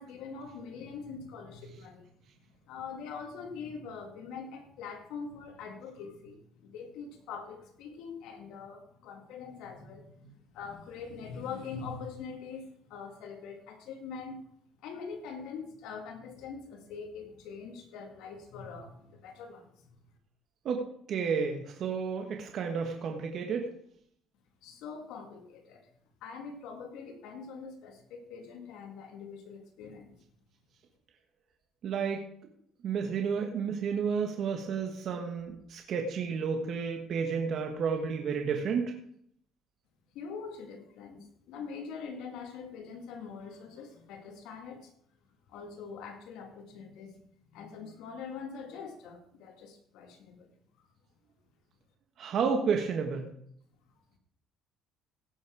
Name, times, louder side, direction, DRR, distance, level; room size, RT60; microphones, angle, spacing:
voice 1, 0.0-2.1 2.7-14.4 14.8-20.0 24.6-25.9 26.2-30.2 40.1-44.9 45.5-50.5, left 5 dB, 80° left, 4 dB, 2.3 m, -43 dB
voice 2, 21.1-23.7 31.8-32.2 32.8-38.9 52.2-53.3, right 6 dB, 50° right, 3 dB, 1.4 m, -31 dB
16.5 x 6.4 x 4.8 m, 0.68 s
cardioid pair, 130°, 0 cm